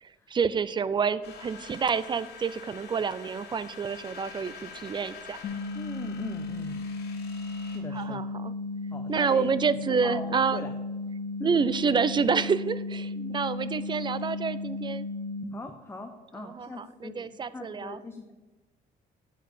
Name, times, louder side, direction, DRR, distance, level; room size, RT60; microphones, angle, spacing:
voice 1, 0.0-5.4 7.9-8.5 9.1-10.6 11.4-15.1 16.6-18.0, right 6 dB, 30° right, 16 dB, 0.4 m, -28 dB
sound 1, 1.2-7.8, left 5 dB, 75° left, 2.6 m, -46 dB
sound 2, 5.4-15.4, left 3 dB, 55° left, 1.7 m, -35 dB
voice 2, 5.7-6.8 7.6-8.2 8.9-9.5 9.9-10.7 11.4-11.6 13.1-13.4 15.5-18.3, left 2 dB, 15° left, 5 dB, 0.7 m, -41 dB
8.8 x 4.7 x 6.1 m, 1.1 s
cardioid pair, 110°, 17 cm